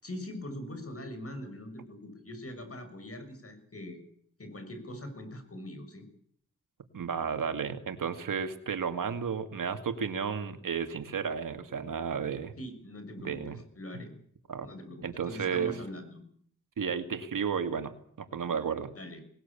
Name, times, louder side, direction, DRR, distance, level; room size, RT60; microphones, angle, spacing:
voice 1, 0.0-4.0 4.4-6.0 12.6-14.1 14.6-16.2 18.9-19.2, left 1 dB, 45° left, 8 dB, 6.4 m, -42 dB
voice 2, 6.9-12.5 13.2-13.6 14.5-14.7 15.0-15.8 16.8-18.9, right 6 dB, 85° right, 8 dB, 2.3 m, -33 dB
20.0 x 20.0 x 8.5 m, 0.62 s
cardioid pair, 65°, 31 cm